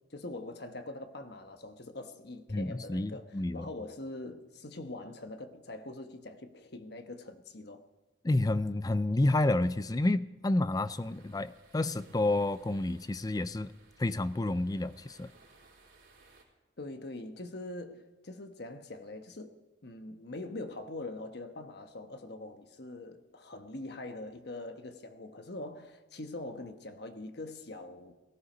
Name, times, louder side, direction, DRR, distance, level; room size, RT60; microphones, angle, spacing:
voice 1, 0.0-7.8 16.8-19.5 19.8-28.1, left 2 dB, 55° left, 1.2 m, -43 dB
voice 2, 2.5-3.7 8.2-13.7 14.0-15.3, left 2 dB, 20° left, 0.4 m, -30 dB
sound 1, 10.7-16.4, right 3 dB, 80° right, 3.7 m, -61 dB
18.0 x 14.5 x 5.2 m
head